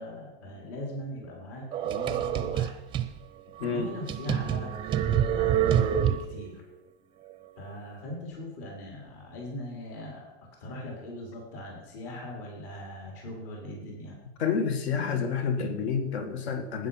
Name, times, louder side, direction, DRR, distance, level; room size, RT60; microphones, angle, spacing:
voice 1, 0.0-2.7 3.6-4.9 5.3-6.6 7.6-10.3 10.6-14.2, left 1 dB, 60° left, -1 dB, 4.4 m, -40 dB
sound 1, 1.7-3.1 3.6-3.7 4.1-6.5, right 10 dB, 15° right, 0.5 m, -26 dB
voice 2, 14.4-16.9, left 6 dB, 75° left, 8 dB, 1.9 m, -29 dB
12.0 x 9.7 x 5.8 m, 1.0 s
supercardioid pair, 150°, 32 cm